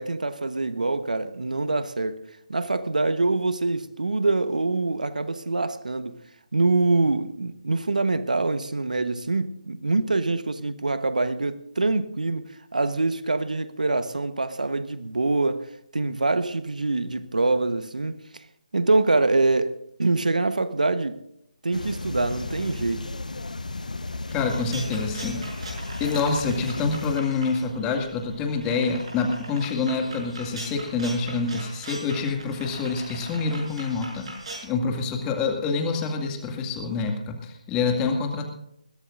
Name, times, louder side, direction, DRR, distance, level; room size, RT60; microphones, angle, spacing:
voice 1, 0.0-2.2 2.5-6.2 6.5-18.4 18.7-21.2 21.6-23.1, right 3 dB, 75° right, 1.2 m, -25 dB
sound 1, 21.7-27.2, left 2 dB, 75° left, 1.1 m, -34 dB
voice 2, 24.3-25.4 26.0-34.3 34.6-38.5, left 4 dB, 15° left, 2.2 m, -26 dB
sound 2, 24.3-34.7, right 2 dB, 50° right, 7.1 m, -41 dB
21.5 x 16.5 x 2.6 m
figure-of-eight pair, 150°, 4 cm